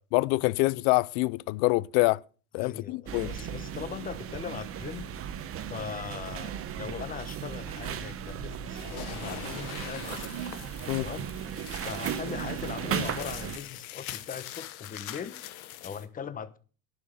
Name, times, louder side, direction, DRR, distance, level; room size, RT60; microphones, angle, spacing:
voice 1, 0.1-2.2 2.5-3.3 10.9-11.1, left 23 dB, 60° left, 0.5 m, -25 dB
voice 2, 2.6-5.1 5.7-10.5 11.0-11.3 11.8-15.4 15.8-16.6, left 7 dB, 20° left, 1.0 m, -40 dB
sound 1, 3.1-13.6, right 9 dB, 35° right, 1.0 m, -36 dB
sound 2, 8.7-16.1, left 13 dB, 80° left, 1.5 m, -43 dB
11.0 x 6.3 x 6.6 m
supercardioid pair, 135°, 42 cm